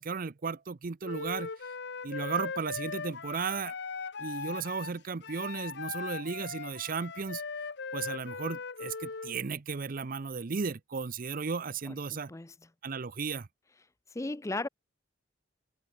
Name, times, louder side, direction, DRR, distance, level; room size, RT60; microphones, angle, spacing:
voice 1, 0.0-1.5 2.0-3.7 4.2-7.4 7.9-12.3 12.8-13.5, right 5 dB, 45° right, 0.6 m, -35 dB
Wind instrument woodwind instrument, 1.0-9.4, left 5 dB, 60° left, 0.9 m, -39 dB
voice 2, 14.1-14.7, left 2 dB, 15° left, 0.5 m, -35 dB
head